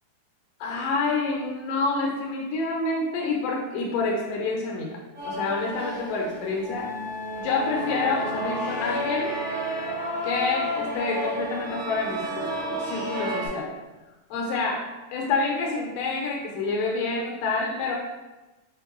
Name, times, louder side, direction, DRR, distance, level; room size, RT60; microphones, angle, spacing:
voice 1, 0.6-4.9 5.2-6.9 7.4-9.4 10.2-13.7 14.3-14.8 15.1-18.0, left 3 dB, 90° left, -2 dB, 2.2 m, -27 dB
sound 1, 5.1-13.5, equal, 50° right, 1.1 m, -31 dB
5.6 x 2.1 x 3.0 m, 1.1 s
omnidirectional pair, 3.7 m